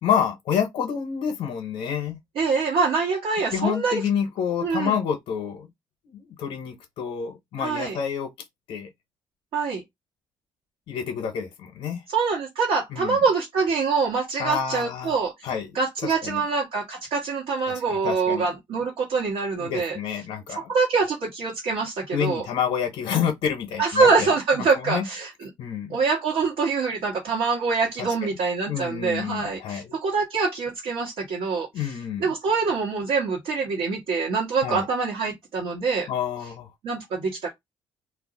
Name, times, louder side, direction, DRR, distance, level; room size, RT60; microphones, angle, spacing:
voice 1, 0.0-2.2 3.5-5.7 6.1-8.3 8.7-8.9 10.9-12.0 12.9-13.2 14.4-15.1 15.4-15.7 16.2-16.4 17.7-18.5 19.5-20.7 22.1-24.3 24.7-25.1 25.6-26.0 28.0-28.1 28.7-29.9 31.7-32.3 34.6-34.9 36.1-36.7, left 8 dB, 75° left, 0.6 m, -28 dB
voice 2, 2.3-4.0 4.6-5.0 7.6-8.0 9.5-9.8 12.1-15.3 15.7-20.0 20.5-22.5 23.8-25.5 25.9-31.9 32.2-36.1 36.8-37.5, right 4 dB, 75° right, 1.1 m, -25 dB
2.3 x 2.0 x 3.6 m
cardioid pair, 150°, 10 cm